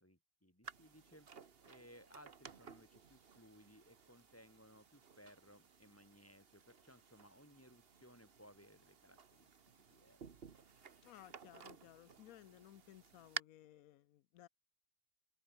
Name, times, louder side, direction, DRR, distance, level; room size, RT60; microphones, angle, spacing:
voice 1, 0.0-9.5 9.8-10.2, equal, 10° left, 3.8 m, -63 dB
sound 1, 0.6-13.4, right 6 dB, 45° right, 1.4 m, -55 dB
voice 2, 11.0-14.5, left 13 dB, 85° left, 1.1 m, -59 dB
omnidirectional pair, 1.5 m